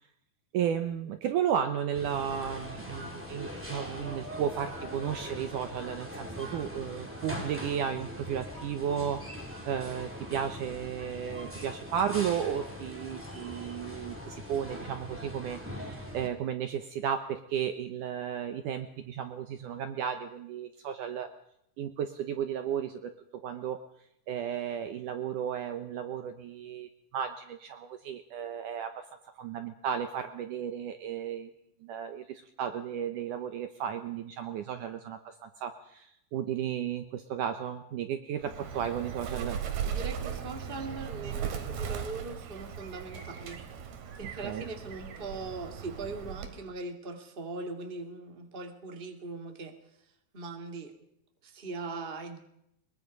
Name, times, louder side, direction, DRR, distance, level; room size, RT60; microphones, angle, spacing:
voice 1, 0.5-9.2 9.7-21.3 21.8-23.8 24.3-29.1 29.4-31.5 31.8-39.6 44.4-44.6, right 8 dB, 70° right, 8 dB, 2.2 m, -34 dB
sound 1, 1.9-16.3, equal, 5° right, 3.3 m, -41 dB
Bird, 38.4-46.7, right 8 dB, 90° right, 3.9 m, -38 dB
voice 2, 39.8-43.6 44.1-49.7 50.3-50.9 51.4-52.4, right 3 dB, 20° right, 4 dB, 1.7 m, -40 dB
22.5 x 22.5 x 5.3 m, 0.77 s
omnidirectional pair, 4.4 m